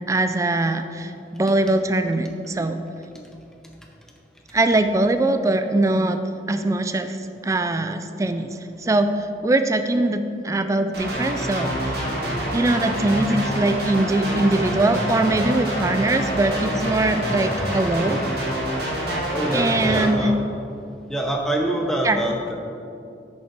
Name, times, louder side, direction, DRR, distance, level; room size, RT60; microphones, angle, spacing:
voice 1, 0.0-2.8 4.5-6.2 6.5-7.2 7.4-8.5 8.8-12.0 12.5-18.2 19.5-20.3 22.0-22.2, right 2 dB, 15° right, 9 dB, 0.3 m, -22 dB
sound 1, 10.9-20.1, right 1 dB, 60° right, 1.9 m, -26 dB
voice 2, 19.3-20.4 21.1-22.6, right 1 dB, 5° left, 0 dB, 0.8 m, -25 dB
6.5 x 5.4 x 6.0 m, 2.6 s
head